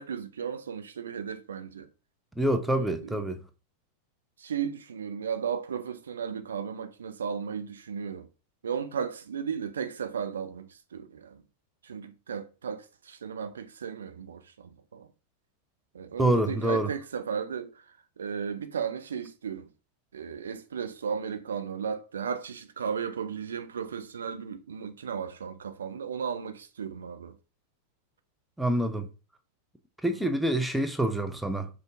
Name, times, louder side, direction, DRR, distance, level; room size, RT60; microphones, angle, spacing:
voice 1, 0.0-1.9 2.7-3.3 4.4-8.3 8.6-11.4 11.8-15.1 15.9-19.7 20.1-27.4 30.2-30.3, right 7 dB, 65° right, 0.4 m, -35 dB
voice 2, 2.4-3.4 16.2-16.9 28.6-29.1 30.0-31.7, right 1 dB, ahead, 0.5 m, -26 dB
5.2 x 2.5 x 2.5 m
figure-of-eight pair, 90°, 0 cm